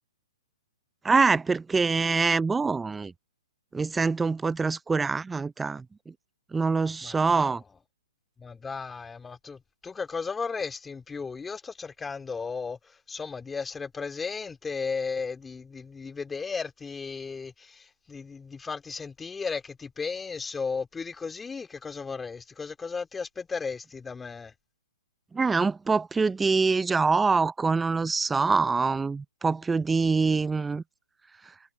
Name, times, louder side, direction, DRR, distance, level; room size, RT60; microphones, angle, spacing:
voice 1, 1.0-3.1 3.7-5.8 6.5-7.6 25.3-30.8, right 4 dB, 10° right, 0.4 m, -24 dB
voice 2, 7.0-7.6 8.4-24.5, left 5 dB, 10° left, 2.3 m, -35 dB
hypercardioid pair, 135°, 0 cm